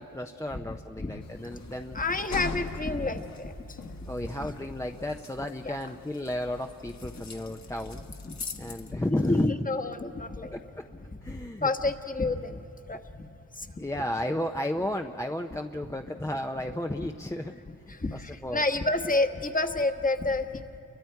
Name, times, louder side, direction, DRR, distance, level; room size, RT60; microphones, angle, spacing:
voice 1, 0.0-2.0 4.1-8.0 8.6-9.5 10.5-10.9 11.2-11.7 13.8-17.6 17.9-18.6, left 1 dB, 10° left, 4 dB, 0.7 m, -33 dB
voice 2, 0.7-1.1 1.9-3.5 3.8-3.9 4.4-4.5 5.6-5.7 8.2-9.0 9.3-10.5 11.3-11.4 11.6-12.6 12.9-13.0 13.6-13.7 17.0-17.1 17.9-20.6, left 2 dB, 25° left, 7 dB, 1.3 m, -29 dB
sound 1, 1.2-8.9, left 4 dB, 55° left, 1.4 m, -42 dB
29.5 x 23.5 x 4.6 m, 2.8 s
cardioid pair, 70°, 32 cm